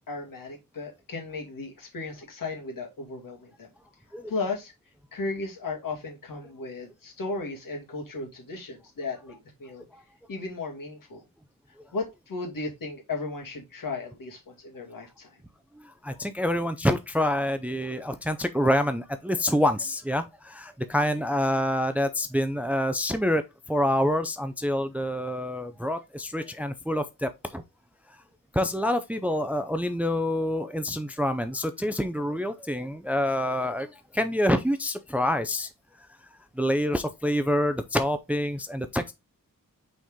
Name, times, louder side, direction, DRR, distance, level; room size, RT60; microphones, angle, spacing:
voice 1, 0.1-3.7 4.1-4.7 5.1-9.8 10.3-11.2 11.9-15.4 16.1-16.2, left 3 dB, 70° left, 2.3 m, -35 dB
voice 2, 15.8-23.4 23.7-27.6 28.5-35.7 36.6-39.1, left 1 dB, 5° right, 0.5 m, -27 dB
6.0 x 4.3 x 3.6 m
wide cardioid pair, 145°, 34 cm